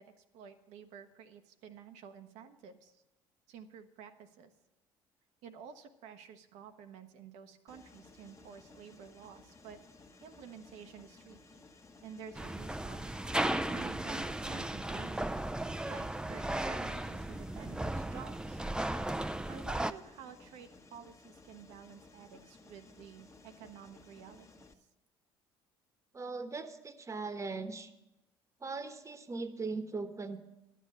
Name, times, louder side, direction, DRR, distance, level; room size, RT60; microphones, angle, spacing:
voice 1, 0.0-3.0 3.5-4.5 5.4-9.8 10.2-11.6 12.0-13.0 13.7-15.4 15.8-18.6 19.5-24.7, right 7 dB, 70° right, 7 dB, 0.9 m, -51 dB
Mechanisms, 7.7-24.7, left 3 dB, 25° left, 1.2 m, -58 dB
sound 1, 12.3-19.9, right 1 dB, 5° right, 0.4 m, -35 dB
voice 2, 26.1-27.9 28.6-30.4, right 3 dB, 25° right, 10 dB, 1.1 m, -39 dB
12.0 x 7.8 x 6.5 m, 0.93 s
hypercardioid pair, 60°, 12 cm